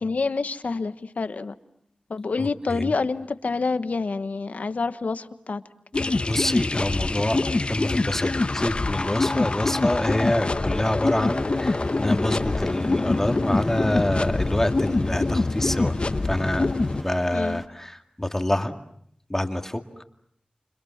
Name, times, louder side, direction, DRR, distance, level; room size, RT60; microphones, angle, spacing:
voice 1, 0.0-1.5 2.1-5.6 17.3-17.6, left 4 dB, 85° left, 11 dB, 1.2 m, -27 dB
voice 2, 2.4-2.9 6.3-16.0 16.2-18.7 19.3-19.8, left 1 dB, 15° left, 6 dB, 2.0 m, -27 dB
sound 1, 5.9-17.0, left 2 dB, 45° left, 1.1 m, -25 dB
sound 2, 11.0-17.7, equal, 5° right, 2.4 m, -44 dB
29.5 x 28.0 x 7.3 m, 0.71 s
wide cardioid pair, 70°, 2 cm